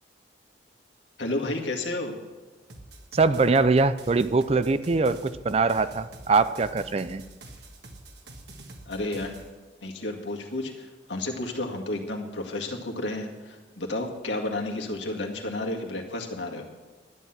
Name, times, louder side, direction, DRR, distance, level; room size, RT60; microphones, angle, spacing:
voice 1, 1.2-2.1 8.9-9.5 9.8-16.6, left 2 dB, 80° left, 1 dB, 2.0 m, -32 dB
sound 1, 2.7-9.5, right 2 dB, 65° right, 1.5 m, -46 dB
voice 2, 3.1-7.2, right 4 dB, 35° right, 14 dB, 0.4 m, -23 dB
12.5 x 10.0 x 5.9 m, 1.3 s
head